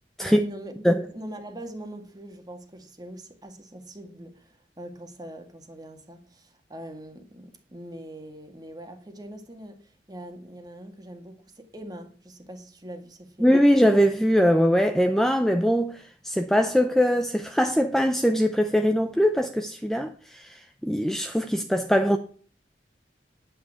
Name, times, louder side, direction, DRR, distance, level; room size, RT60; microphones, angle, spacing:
voice 1, 0.2-13.6, right 1 dB, 25° right, 1.9 m, -42 dB
voice 2, 13.4-22.2, equal, ahead, 0.6 m, -22 dB
10.0 x 8.7 x 4.9 m
head